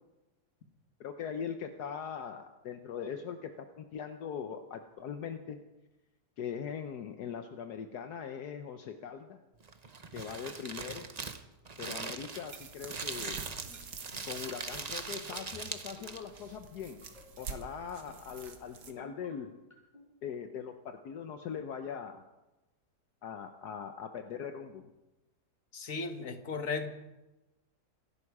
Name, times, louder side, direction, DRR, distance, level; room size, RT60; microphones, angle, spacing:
voice 1, 1.0-3.5 3.8-5.6 6.4-9.4 10.1-11.1 11.8-13.5 14.3-17.0 17.4-19.5 20.2-22.2 23.2-24.9, left 7 dB, 75° left, 6 dB, 1.4 m, -41 dB
Crumpling crinkling, 9.6-16.4, right 4 dB, 30° right, 0.8 m, -41 dB
sound 1, 12.5-18.9, right 5 dB, 85° right, 2.0 m, -48 dB
sound 2, 13.4-13.8 14.1-14.4 15.2-15.7 16.0-16.3 17.0-17.4 17.8-18.2 18.9-19.3 19.7-20.0, equal, 25° left, 5.9 m, -54 dB
voice 2, 25.7-26.9, left 4 dB, 55° left, 7 dB, 1.8 m, -36 dB
27.0 x 11.0 x 4.8 m, 1.0 s
omnidirectional pair, 1.8 m